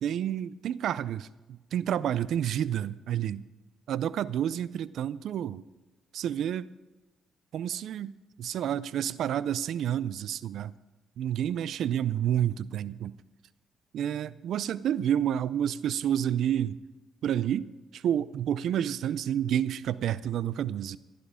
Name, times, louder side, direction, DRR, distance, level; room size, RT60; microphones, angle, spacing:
voice 1, 0.0-3.4 3.9-5.6 6.1-6.7 7.5-8.1 8.4-10.7 11.2-13.1 13.9-16.8 17.2-17.7 17.9-21.0, right 10 dB, 70° right, 0.5 m, -29 dB
16.0 x 11.5 x 5.0 m
cardioid pair, 90°, 0 cm